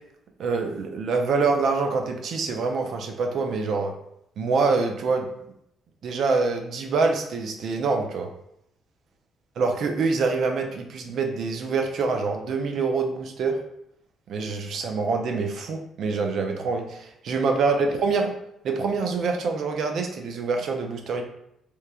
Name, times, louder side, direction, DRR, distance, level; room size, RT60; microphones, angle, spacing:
voice 1, 0.4-3.9 4.4-5.3 6.0-8.3 9.6-13.6 14.3-18.3 18.6-21.2, right 4 dB, 70° right, 4 dB, 0.4 m, -25 dB
2.9 x 2.1 x 2.3 m, 0.77 s
cardioid pair, 90°, 0 cm